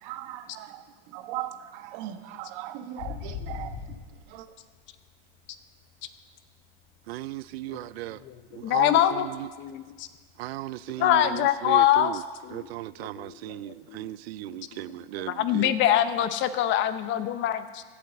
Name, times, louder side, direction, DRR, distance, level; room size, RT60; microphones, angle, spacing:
voice 1, 0.0-3.8 4.3-4.5, right 12 dB, 55° right, 1.2 m, -38 dB
sound 1, 3.0-6.3 6.6-8.9 9.2-9.6 9.9-11.8 12.1-12.2 12.5-12.9 13.2-13.4 15.5-15.6, left 7 dB, 60° left, 1.9 m, -41 dB
voice 2, 7.1-8.2 8.5-9.5 10.4-12.2 12.5-15.7, right 16 dB, 90° right, 0.5 m, -36 dB
voice 3, 8.3-9.3 9.6-10.1 11.0-12.7 13.0-14.1 14.4-14.6 14.9-15.0 15.3-17.8, left 11 dB, 40° left, 0.8 m, -25 dB
16.0 x 8.8 x 7.1 m
supercardioid pair, 140°, 30 cm